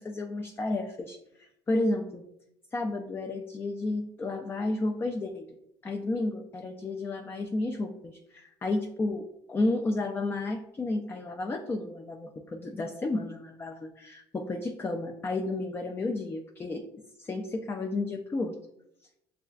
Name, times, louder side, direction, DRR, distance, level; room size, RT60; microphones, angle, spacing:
voice 1, 0.0-2.2 2.7-5.6 5.8-16.8 17.2-18.6, left 2 dB, 20° left, 4 dB, 0.4 m, -32 dB
6.8 x 2.3 x 2.4 m, 0.81 s
cardioid pair, 105°, 10 cm